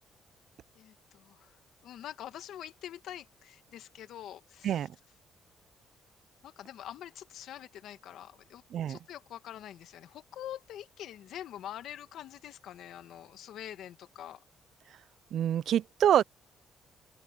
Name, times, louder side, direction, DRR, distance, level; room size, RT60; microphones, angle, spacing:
voice 1, 0.7-1.5 1.8-4.9 6.4-8.6 8.9-14.4, left 11 dB, 80° left, 1.6 m, -45 dB
voice 2, 15.3-16.2, right 10 dB, 70° right, 0.4 m, -26 dB
open air
cardioid pair, 90°, 0 cm